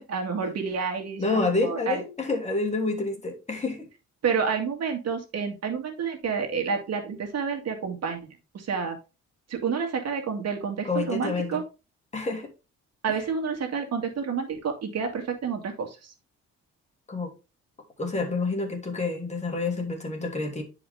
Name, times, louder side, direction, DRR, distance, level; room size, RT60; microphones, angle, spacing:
voice 1, 0.1-2.0 4.2-9.0 9.5-11.6 13.0-16.1, right 6 dB, 55° right, 2.2 m, -29 dB
voice 2, 1.2-3.8 10.9-11.6 12.1-12.5 17.1-17.3 18.0-20.6, left 3 dB, 25° left, 2.9 m, -28 dB
10.0 x 5.0 x 3.5 m
cardioid pair, 90°, 30 cm